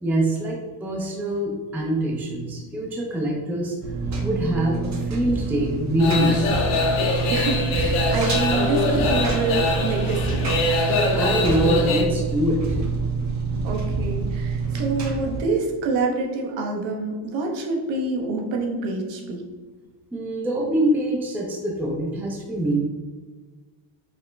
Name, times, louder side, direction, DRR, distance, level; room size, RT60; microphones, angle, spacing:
voice 1, 0.0-3.7 4.2-6.5 11.1-12.6 20.1-22.8, right 1 dB, 5° right, -1 dB, 0.4 m, -24 dB
Engine, 3.8-15.4, right 4 dB, 35° right, 0.7 m, -27 dB
sound 1, 6.0-12.0, left 2 dB, 75° left, 1.1 m, -24 dB
voice 2, 7.3-10.5 13.6-19.4, right 3 dB, 65° right, 1 dB, 0.9 m, -26 dB
5.1 x 2.1 x 3.3 m, 1.4 s
cardioid pair, 130°, 49 cm